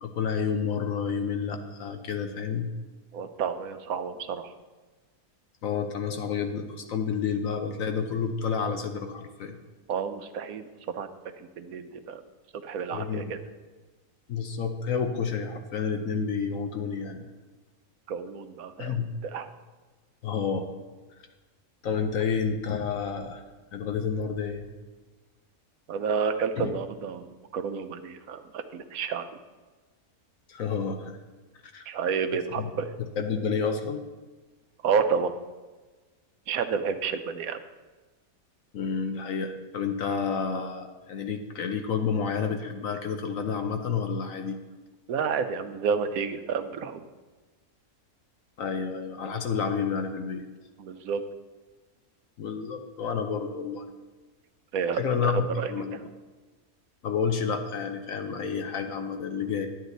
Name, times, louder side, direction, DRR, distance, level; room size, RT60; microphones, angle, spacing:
voice 1, 0.0-2.7 5.6-9.6 12.9-13.3 14.3-17.2 18.8-19.1 20.2-20.6 21.8-23.4 23.7-24.7 26.6-26.7 30.5-31.2 31.7-31.8 32.6-32.7 33.0-34.0 38.7-44.6 48.6-50.5 52.4-53.9 55.0-56.1 57.0-59.7, left 6 dB, 65° left, 6 dB, 1.2 m, -30 dB
voice 2, 3.1-4.5 9.9-10.7 10.9-11.1 11.4-12.2 12.5-13.4 18.1-19.5 25.9-29.3 31.9-32.9 34.8-35.3 36.5-37.6 45.1-47.0 50.8-51.2 54.7-55.7, right 6 dB, 75° right, 9 dB, 1.2 m, -30 dB
11.5 x 9.1 x 4.0 m, 1.3 s
omnidirectional pair, 1.5 m